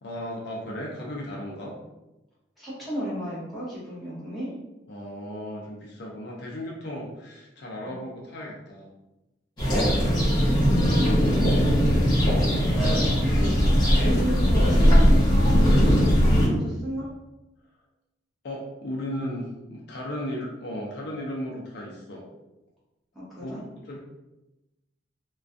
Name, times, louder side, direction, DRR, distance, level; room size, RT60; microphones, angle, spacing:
voice 1, 0.0-1.7 4.9-8.9 18.4-22.3 23.4-23.6 23.9-24.0, equal, 55° left, -2 dB, 0.4 m, -35 dB
voice 2, 2.6-4.5 7.8-8.0 9.7-10.3 10.8-12.6 13.3-13.6 14.0-17.1 23.1-23.6, equal, ahead, -10 dB, 0.8 m, -34 dB
sound 1, 9.6-16.5, equal, 20° left, 0.9 m, -19 dB
2.4 x 2.2 x 2.4 m, 1.0 s
head